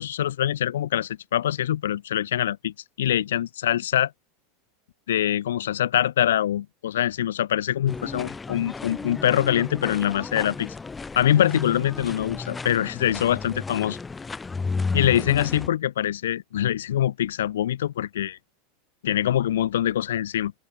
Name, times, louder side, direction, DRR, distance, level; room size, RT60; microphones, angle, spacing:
voice 1, 0.0-4.1 5.1-10.7 11.1-14.0 14.9-18.4 19.0-20.5, left 11 dB, 65° left, 0.9 m, -24 dB
sound 1, 7.9-15.7, left 4 dB, 15° left, 1.8 m, -33 dB
open air
figure-of-eight pair, 85°, 0 cm